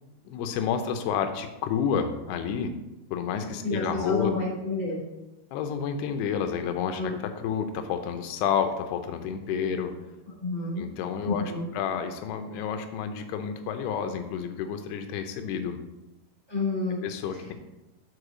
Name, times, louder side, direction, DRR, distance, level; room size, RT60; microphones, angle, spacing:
voice 1, 0.3-2.7 3.1-4.3 5.5-9.9 10.8-15.8 17.0-17.5, left 7 dB, 85° left, 7 dB, 2.7 m, -30 dB
voice 2, 3.6-5.0 6.9-7.1 10.3-10.8 11.2-11.6 16.5-17.0 17.4-17.5, left 3 dB, 15° right, -7 dB, 2.1 m, -29 dB
6.5 x 4.7 x 4.8 m, 0.98 s
omnidirectional pair, 4.6 m